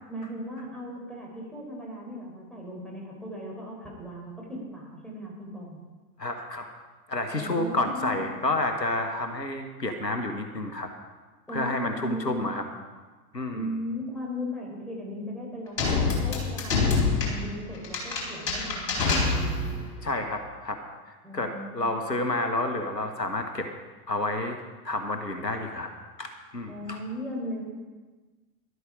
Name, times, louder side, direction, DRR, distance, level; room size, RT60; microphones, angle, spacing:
voice 1, 0.1-5.8 7.3-8.2 11.5-12.6 13.5-19.8 21.2-22.0 26.7-27.6, equal, ahead, -3 dB, 4.5 m, -37 dB
voice 2, 6.2-6.7 7.1-10.9 11.5-12.6 13.3-13.6 20.0-20.8 21.3-23.7 24.1-24.6 24.8-25.9 26.2-27.0, left 2 dB, 85° left, 5 dB, 1.4 m, -30 dB
sound 1, 15.8-19.9, left 4 dB, 55° left, 4.3 m, -26 dB
12.5 x 12.5 x 5.1 m, 1.3 s
figure-of-eight pair, 90°, 49 cm